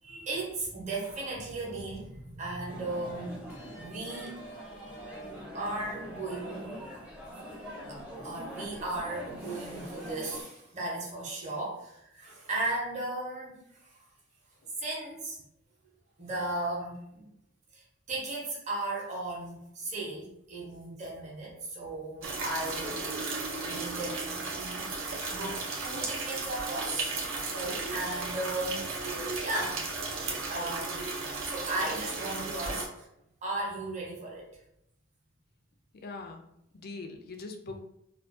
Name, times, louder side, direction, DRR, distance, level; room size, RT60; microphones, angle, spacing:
voice 1, 0.0-5.0 5.5-7.0 7.3-14.1 14.8-15.4 16.2-17.3 17.7-23.0 23.7-27.1 27.5-29.8 30.5-31.1 31.4-33.1 33.4-34.5, right 2 dB, 35° right, -3 dB, 0.7 m, -36 dB
sound 1, 1.0-1.4 3.5-5.3 5.6-5.9, right 2 dB, 90° left, 0.9 m, -49 dB
sound 2, 2.7-10.4, equal, 5° right, 0.5 m, -43 dB
sound 3, 22.2-32.9, right 3 dB, 75° right, 0.5 m, -35 dB
voice 2, 35.9-36.5 36.7-37.8, left 3 dB, 50° left, 5 dB, 0.4 m, -42 dB
2.3 x 2.2 x 2.5 m, 0.78 s
head